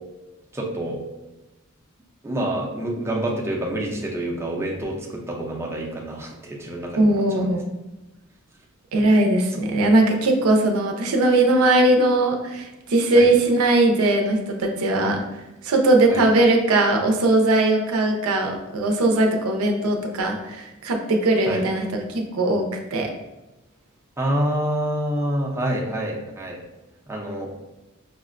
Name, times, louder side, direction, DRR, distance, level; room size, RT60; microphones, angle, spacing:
voice 1, 0.5-1.0 2.2-7.6 13.2-13.3 16.1-16.2 21.5-21.6 24.2-26.6 27.1-27.5, right 1 dB, 10° right, -2 dB, 0.5 m, -27 dB
voice 2, 7.0-7.7 8.9-15.2 15.6-22.7 22.9-23.1, right 2 dB, 90° right, 2 dB, 0.5 m, -19 dB
4.9 x 2.1 x 2.4 m, 1.0 s
head